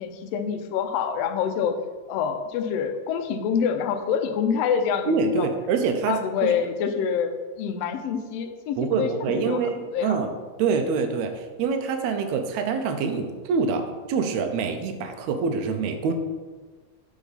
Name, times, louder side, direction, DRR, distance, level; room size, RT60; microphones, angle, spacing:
voice 1, 0.0-1.8 2.1-5.5 6.1-7.3 7.6-10.2, left 7 dB, 80° left, 7 dB, 1.5 m, -26 dB
voice 2, 5.1-6.5 8.8-10.3 10.6-13.8 14.1-16.1, right 5 dB, 80° right, 6 dB, 1.8 m, -25 dB
6.8 x 4.8 x 4.0 m, 1.4 s
omnidirectional pair, 3.3 m